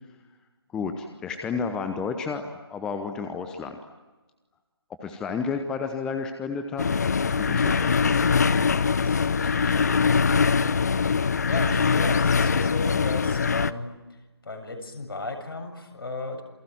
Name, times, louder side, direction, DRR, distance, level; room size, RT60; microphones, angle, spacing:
voice 1, 0.7-2.4 2.7-3.8 5.0-6.8 7.3-8.2, left 5 dB, 5° left, 6 dB, 0.9 m, -31 dB
sound 1, 6.8-13.7, left 5 dB, 40° left, 0.8 m, -22 dB
voice 2, 8.9-10.0 11.5-14.2 14.4-16.4, left 2 dB, 60° left, 5 dB, 7.4 m, -35 dB
28.0 x 21.5 x 9.4 m, 1.2 s
figure-of-eight pair, 155°, 14 cm